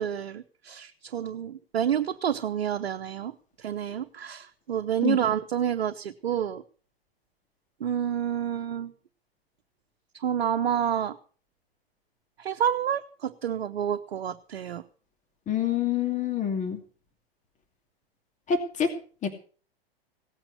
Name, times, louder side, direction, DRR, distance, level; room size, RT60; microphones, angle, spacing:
voice 1, 0.0-3.3 3.6-6.6 7.8-8.9 10.1-11.2 12.4-14.8, right 9 dB, 70° right, 5 dB, 1.1 m, -29 dB
voice 2, 15.5-16.8 18.5-18.9 19.2-19.3, left 8 dB, 25° left, 6 dB, 2.6 m, -26 dB
17.5 x 8.9 x 6.7 m, 0.41 s
figure-of-eight pair, 105°, 31 cm